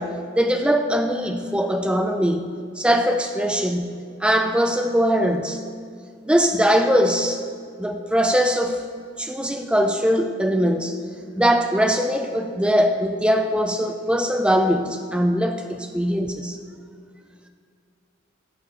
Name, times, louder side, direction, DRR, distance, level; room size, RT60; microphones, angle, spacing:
voice 1, 0.0-5.6 6.2-7.4 7.8-8.8 9.2-11.0 11.4-16.6, equal, 5° right, 5 dB, 0.5 m, -21 dB
15.5 x 6.4 x 3.0 m, 2.2 s
head